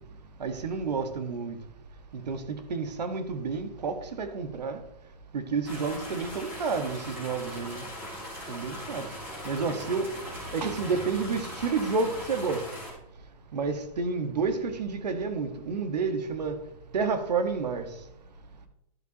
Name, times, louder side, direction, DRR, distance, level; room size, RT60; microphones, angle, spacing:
voice 1, 0.4-1.5 2.1-4.8 5.3-7.8 8.5-9.1 9.4-10.1 10.5-12.6 13.5-16.5 16.9-17.8, right 4 dB, 85° right, 1.5 m, -30 dB
sound 1, 5.6-12.9, left 1 dB, 10° right, 2.6 m, -40 dB
12.0 x 8.3 x 2.9 m
hypercardioid pair, 165°, 21 cm